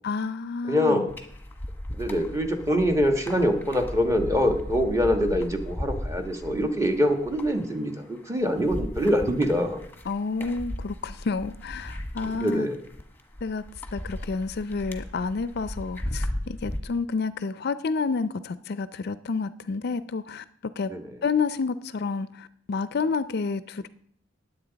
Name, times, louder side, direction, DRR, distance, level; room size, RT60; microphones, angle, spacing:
voice 1, 0.0-1.1 10.1-12.7 13.4-13.6 13.9-20.9 21.2-23.9, left 4 dB, 55° left, 14 dB, 0.5 m, -29 dB
voice 2, 0.7-1.1 1.9-9.8 12.3-12.8 20.9-21.0, equal, 15° right, 4 dB, 1.3 m, -24 dB
sound 1, 1.1-16.8, left 1 dB, 10° left, 1.2 m, -36 dB
19.0 x 8.1 x 4.0 m, 0.67 s
head